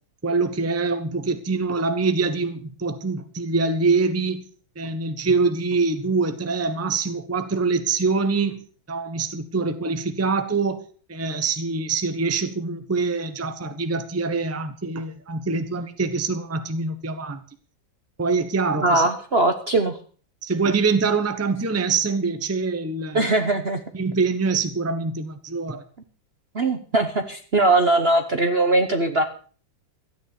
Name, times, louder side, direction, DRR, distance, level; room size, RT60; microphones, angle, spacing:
voice 1, 0.2-4.5 4.8-10.8 11.1-17.4 18.2-19.0 20.4-23.3 23.9-25.8, right 4 dB, 10° right, 9 dB, 0.9 m, -24 dB
voice 2, 18.8-20.0 23.1-23.8 26.5-29.2, right 2 dB, 40° right, 7 dB, 1.0 m, -20 dB
13.5 x 9.7 x 6.8 m, 0.42 s
omnidirectional pair, 2.1 m